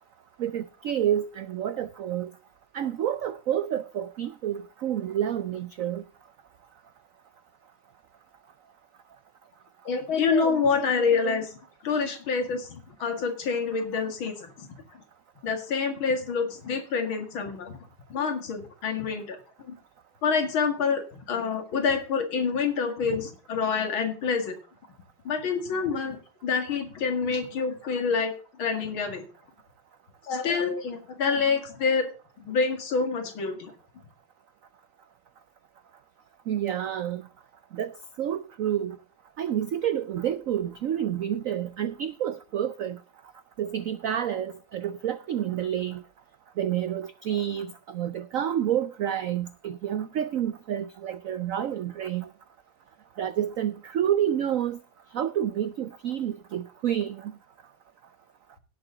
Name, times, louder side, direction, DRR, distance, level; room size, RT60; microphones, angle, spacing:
voice 1, 0.4-2.3 2.7-6.0 36.5-37.2 37.7-37.9 38.2-39.0 39.4-43.0 43.6-46.0 46.6-52.3 53.2-54.8 55.1-57.3, right 10 dB, 80° right, 0.7 m, -29 dB
voice 2, 9.9-11.6 11.8-14.7 15.4-17.8 18.1-19.4 19.7-19.8 20.2-24.6 25.2-28.3 28.6-29.2 30.2-32.1 32.4-33.7, left 5 dB, 85° left, 2.8 m, -27 dB
17.5 x 7.0 x 3.8 m
omnidirectional pair, 2.2 m